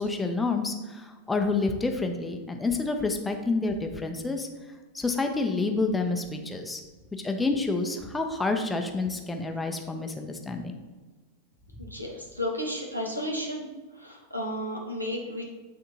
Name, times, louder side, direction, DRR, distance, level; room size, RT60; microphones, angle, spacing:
voice 1, 0.0-4.5 4.9-6.8 7.1-10.8, left 3 dB, 10° left, 4 dB, 0.6 m, -28 dB
voice 2, 11.8-13.7 13.9-15.4, equal, 85° right, 0 dB, 1.1 m, -33 dB
8.9 x 3.6 x 2.9 m, 1.3 s
figure-of-eight pair, 90°, 0 cm